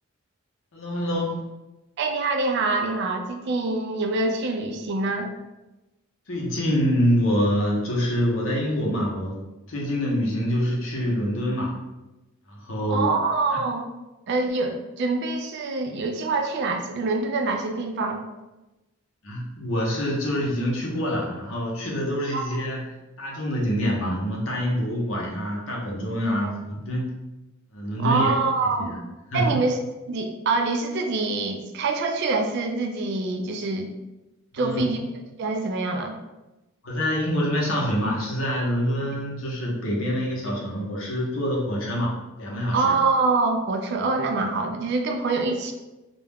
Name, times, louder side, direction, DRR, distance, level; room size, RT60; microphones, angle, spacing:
voice 1, 0.7-1.4 6.3-9.4 9.7-11.7 12.5-13.1 13.5-13.6 19.2-22.9 23.2-27.1 27.7-28.3 28.8-29.0 29.3-29.6 34.5-34.9 36.8-43.0, equal, 65° left, -2 dB, 0.7 m, -26 dB
voice 2, 2.0-5.3 12.9-13.9 14.3-18.2 22.3-22.5 26.4-26.5 28.0-28.9 29.3-29.8 30.1-33.9 34.5-35.0 35.4-36.1 42.7-45.7, right 3 dB, 55° right, 4 dB, 0.3 m, -25 dB
2.3 x 2.1 x 3.3 m, 1.0 s
head